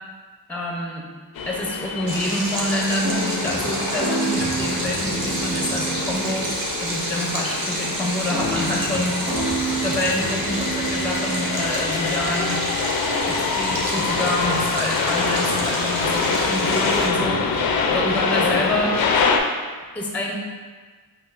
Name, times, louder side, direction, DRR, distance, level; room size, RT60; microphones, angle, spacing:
voice 1, 0.5-1.0 1.5-6.5 6.8-9.2 9.8-12.6 13.3-19.0 19.9-20.3, left 1 dB, 5° left, -1 dB, 0.5 m, -27 dB
sound 1, 1.4-19.4, left 4 dB, 60° left, 0.5 m, -26 dB
Stream, 2.1-17.1, right 1 dB, 55° right, 0.9 m, -29 dB
sound 2, 3.0-6.8 8.3-11.9, right 2 dB, 90° right, 1.1 m, -29 dB
5.2 x 2.4 x 2.4 m, 1.4 s
cardioid pair, 75°, 40 cm